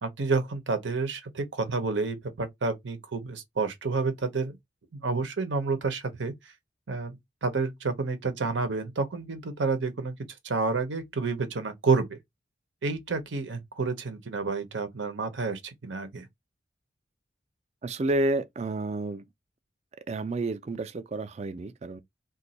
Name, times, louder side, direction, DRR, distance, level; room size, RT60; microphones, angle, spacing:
voice 1, 0.0-4.6 5.0-6.5 6.9-7.2 7.4-10.2 10.4-12.2 12.8-16.3, right 4 dB, 90° right, 0.8 m, -29 dB
voice 2, 17.8-19.2 20.1-22.0, right 2 dB, 35° right, 0.4 m, -30 dB
2.6 x 2.3 x 4.0 m
head